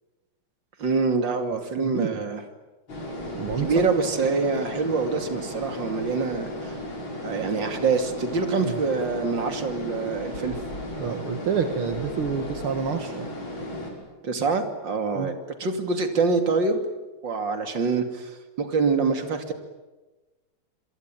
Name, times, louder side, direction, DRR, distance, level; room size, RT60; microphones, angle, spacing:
voice 1, 0.8-2.4 3.6-6.7 7.2-10.6 14.2-16.8 17.2-19.5, right 4 dB, 60° right, 6 dB, 3.4 m, -25 dB
voice 2, 1.8-2.2 3.3-3.8 8.6-8.8 11.0-13.3 15.2-15.3, right 6 dB, 80° right, 7 dB, 2.7 m, -28 dB
sound 1, 2.9-13.9, left 1 dB, 75° left, 7.1 m, -35 dB
28.0 x 23.0 x 9.1 m, 1.2 s
omnidirectional pair, 2.3 m